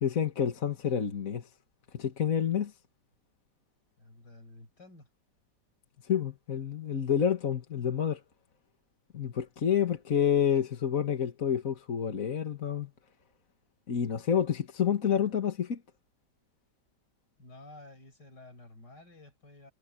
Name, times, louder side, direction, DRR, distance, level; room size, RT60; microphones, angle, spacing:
voice 1, 0.0-1.5 1.9-2.7 6.1-8.2 9.1-12.9 13.9-15.8, left 8 dB, 50° left, 2.0 m, -28 dB
voice 2, 4.0-5.1 17.4-19.7, left 2 dB, 70° left, 6.1 m, -52 dB
omnidirectional pair, 1.9 m